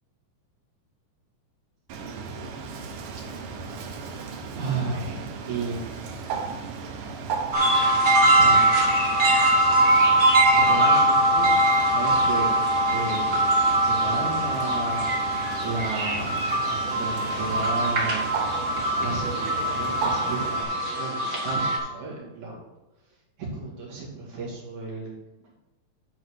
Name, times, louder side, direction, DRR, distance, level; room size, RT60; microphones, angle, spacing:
Bird, 1.9-20.6, right 5 dB, 90° right, 2.6 m, -36 dB
voice 1, 2.1-2.5 3.2-3.6 4.5-6.4 8.3-8.6 10.6-12.5 12.9-15.0 15.6-18.3 19.0-22.7 23.4-25.1 25.4-25.7, right 3 dB, 65° right, -3 dB, 3.6 m, -34 dB
sound 1, 7.5-21.8, right 1 dB, 35° right, 1.5 m, -22 dB
9.8 x 4.0 x 6.4 m, 1.0 s
omnidirectional pair, 3.6 m